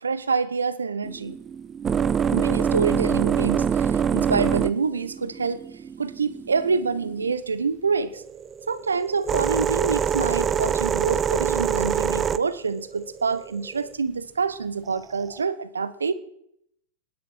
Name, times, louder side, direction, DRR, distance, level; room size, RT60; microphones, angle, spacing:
voice 1, 0.0-1.4 2.3-5.6 6.0-8.2 8.7-16.1, right 5 dB, 80° right, 16 dB, 0.9 m, -26 dB
sound 1, 1.0-7.3 8.1-13.9 14.9-15.4, right 7 dB, 20° right, 0.6 m, -25 dB
28.5 x 10.0 x 4.5 m, 0.75 s
figure-of-eight pair, 100°, 0 cm